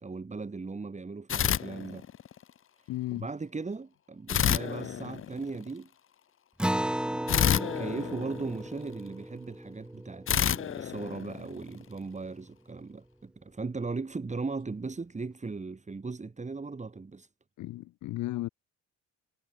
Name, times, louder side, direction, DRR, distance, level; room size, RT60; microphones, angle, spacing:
voice 1, 0.0-2.1 2.8-5.9 7.0-17.3, right 4 dB, 25° right, 2.6 m, -38 dB
sound 1, 1.3-2.4 4.3-5.7 7.3-9.0 10.3-11.8, left 9 dB, 45° left, 0.7 m, -29 dB
voice 2, 2.9-3.3 17.6-18.5, left 16 dB, 80° left, 0.7 m, -34 dB
Acoustic guitar, 6.6-11.5, right 1 dB, 5° right, 0.7 m, -35 dB
cardioid pair, 90°, 30 cm